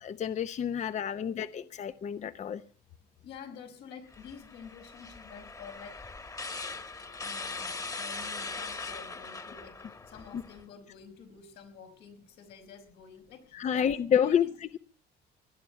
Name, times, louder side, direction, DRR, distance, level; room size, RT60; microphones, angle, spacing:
voice 1, 0.0-2.6 13.5-14.4, left 8 dB, 45° left, 12 dB, 0.8 m, -29 dB
voice 2, 0.8-1.9 3.2-6.0 7.2-14.5, left 6 dB, 85° left, 5 dB, 5.3 m, -49 dB
sound 1, 4.1-10.6, left 3 dB, 20° left, 1.5 m, -40 dB
19.0 x 12.0 x 5.7 m, 0.39 s
cardioid pair, 110°, 17 cm